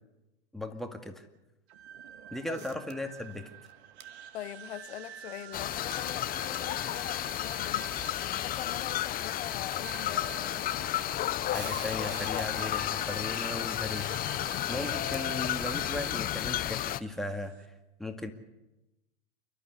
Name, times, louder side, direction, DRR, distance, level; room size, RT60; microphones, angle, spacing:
voice 1, 0.5-1.2 2.3-3.5 11.5-14.3 14.7-17.5 18.0-18.3, left 2 dB, ahead, 2.1 m, -37 dB
sound 1, 1.7-17.7, right 9 dB, 65° right, 1.8 m, -48 dB
voice 2, 2.5-2.8 4.3-7.9 8.4-10.7, left 13 dB, 65° left, 1.1 m, -43 dB
sound 2, 2.6-3.4 3.6-3.7 4.0-4.1 5.9-6.0 6.8-6.9 7.6-7.7 7.9-8.2 8.8-9.2 10.0-10.1 11.5-12.5, right 9 dB, 30° right, 1.5 m, -46 dB
sound 3, 5.5-17.0, left 13 dB, 25° left, 0.6 m, -32 dB
28.5 x 12.5 x 8.2 m
hypercardioid pair, 100°, 34 cm